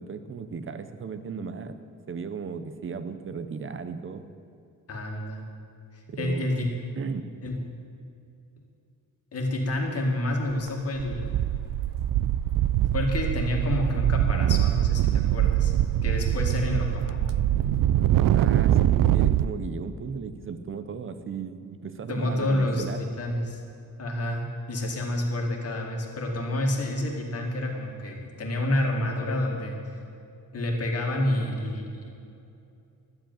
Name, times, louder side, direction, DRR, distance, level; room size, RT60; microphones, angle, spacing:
voice 1, 0.0-1.8 2.1-4.2 6.1-6.7 7.0-7.3 18.3-23.0, right 5 dB, 40° right, 10 dB, 0.8 m, -36 dB
voice 2, 4.9-5.4 5.9-6.7 7.4-7.5 9.3-11.4 12.9-15.7 16.0-17.2 22.1-22.8 23.2-23.6 24.0-29.8 30.5-32.1, left 1 dB, 50° left, 1 dB, 2.1 m, -28 dB
sound 1, 10.5-10.7 11.0-19.5, right 12 dB, 90° right, 0.5 m, -23 dB
11.5 x 7.9 x 9.0 m, 2.6 s
wide cardioid pair, 150°, 32 cm